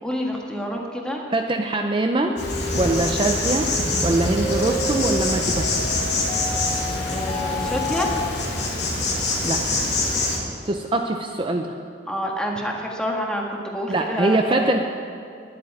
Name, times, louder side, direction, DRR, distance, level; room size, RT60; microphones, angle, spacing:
voice 1, 0.0-1.2 7.1-8.1 12.1-14.8, equal, 5° left, -1 dB, 1.6 m, -28 dB
voice 2, 1.3-2.4 2.7-3.7 4.0-5.7 9.4-9.6 10.6-11.7 13.9-14.8, right 2 dB, 30° right, 3 dB, 0.6 m, -23 dB
sound 1, 2.3-8.3, left 1 dB, 35° left, 2.5 m, -31 dB
Insect, 2.4-10.4, left 2 dB, 75° left, 2.7 m, -25 dB
10.0 x 8.5 x 9.4 m, 2.4 s
head